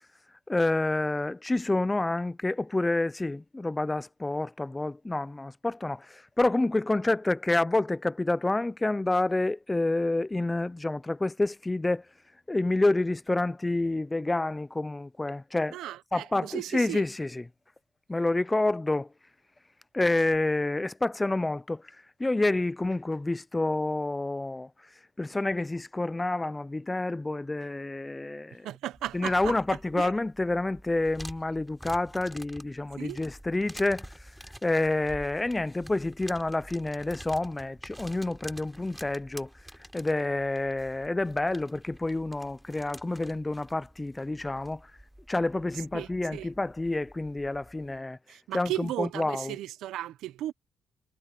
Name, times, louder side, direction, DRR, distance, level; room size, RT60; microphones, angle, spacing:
voice 1, 0.5-12.0 12.5-15.8 16.1-17.4 18.1-19.1 19.9-21.8 22.2-24.7 25.2-28.7 29.1-34.1 34.6-39.5 39.9-44.8 45.3-48.2 48.5-49.6, left 2 dB, 15° left, 0.6 m, -28 dB
voice 2, 15.7-17.0 28.6-29.5 30.0-30.1 33.0-33.2 45.9-46.5 48.3-50.5, right 14 dB, 85° right, 0.8 m, -35 dB
sound 1, 28.9-48.0, equal, 5° right, 4.9 m, -49 dB
cardioid pair, 90°, 0 cm